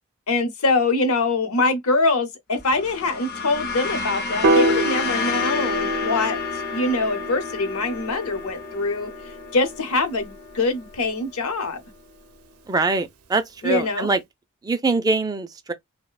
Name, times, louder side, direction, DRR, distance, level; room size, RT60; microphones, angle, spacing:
voice 1, 0.3-9.1 9.5-11.8 13.6-14.1, left 3 dB, 80° left, 0.7 m, -24 dB
sound 1, 2.6-11.1, left 5 dB, 45° left, 0.5 m, -31 dB
Piano, 4.4-10.7, right 1 dB, 90° right, 0.5 m, -27 dB
voice 2, 12.7-14.2 14.6-15.7, right 3 dB, 20° right, 0.3 m, -23 dB
3.0 x 2.1 x 2.2 m
head